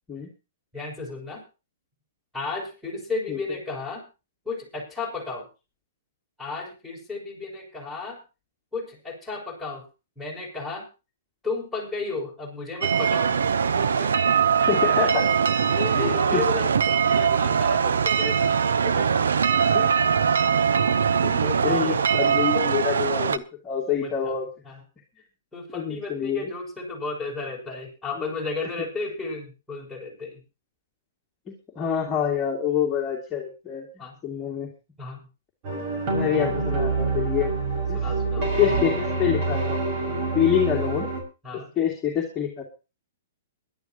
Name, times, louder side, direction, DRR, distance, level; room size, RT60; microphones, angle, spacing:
voice 1, 0.7-1.4 2.3-4.1 4.4-5.5 6.4-8.2 8.7-9.8 10.1-10.9 11.4-14.7 15.6-18.5 18.8-19.1 19.7-19.8 21.4-22.1 24.0-24.3 24.6-24.8 25.5-30.4 34.0-34.1 35.0-35.3 37.9-38.5 41.4-41.7, left 3 dB, ahead, -6 dB, 6.8 m, -34 dB
sound 1, 12.8-23.4, right 7 dB, 90° right, 0.8 m, -22 dB
voice 2, 14.7-15.3 15.9-16.4 19.7-19.9 20.5-20.9 21.2-24.5 25.7-26.4 28.2-28.3 31.5-33.9 34.2-34.7 36.1-37.5 37.9-38.0 38.4-39.8 40.3-41.1 41.8-42.6, left 9 dB, 20° left, -2 dB, 2.5 m, -26 dB
sound 2, 35.6-41.2, right 3 dB, 40° right, 5.8 m, -26 dB
21.5 x 11.5 x 3.0 m, 0.30 s
hypercardioid pair, 145°, 0 cm